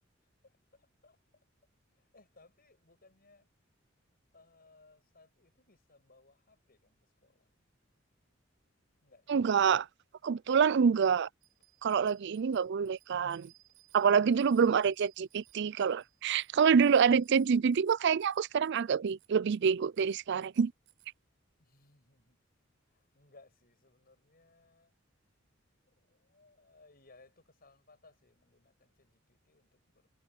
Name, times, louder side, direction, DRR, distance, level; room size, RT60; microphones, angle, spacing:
voice 1, 0.4-1.2 1.9-3.5 4.3-7.5 9.0-9.4 10.8-11.0 18.2-18.3 21.6-22.4 22.8-24.9 25.9-30.1, left 3 dB, 50° left, 6.5 m, -64 dB
voice 2, 9.3-9.9 10.2-11.3 11.8-13.5 13.9-20.7, right 6 dB, 60° right, 0.4 m, -26 dB
Bicycle bell, 11.4-21.1, right 16 dB, 85° right, 7.0 m, -65 dB
head